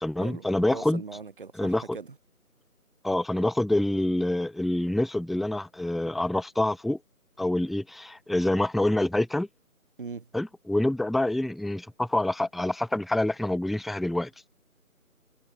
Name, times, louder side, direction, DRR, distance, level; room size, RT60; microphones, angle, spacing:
voice 1, 0.0-1.0 1.6-2.0 3.0-7.0 7.4-9.5 10.3-14.3, left 1 dB, ahead, 0.3 m, -26 dB
voice 2, 0.7-2.2 10.0-10.3, right 4 dB, 35° right, 3.4 m, -40 dB
figure-of-eight pair, 165°, 45 cm